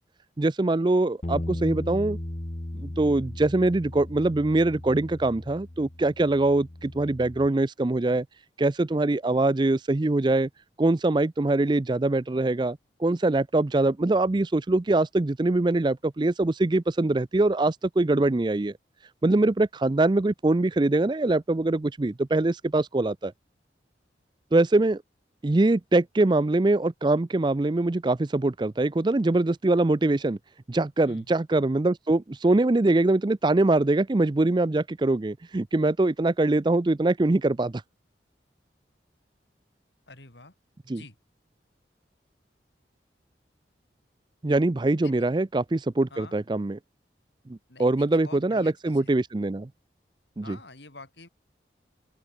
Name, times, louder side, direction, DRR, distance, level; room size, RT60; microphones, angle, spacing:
voice 1, 0.4-2.2 2.7-8.2 8.6-10.5 10.8-18.7 19.2-23.3 24.5-25.0 25.4-30.4 30.7-37.8 40.9-41.0 44.4-46.8 47.5-49.7 50.4-50.6, right 2 dB, 25° right, 0.4 m, -23 dB
Bass guitar, 1.2-7.5, left 1 dB, 35° left, 1.2 m, -37 dB
voice 2, 40.1-40.5 40.9-41.2 45.0-45.3 46.1-46.4 47.7-49.2 50.4-51.3, left 3 dB, 75° left, 5.3 m, -47 dB
open air
head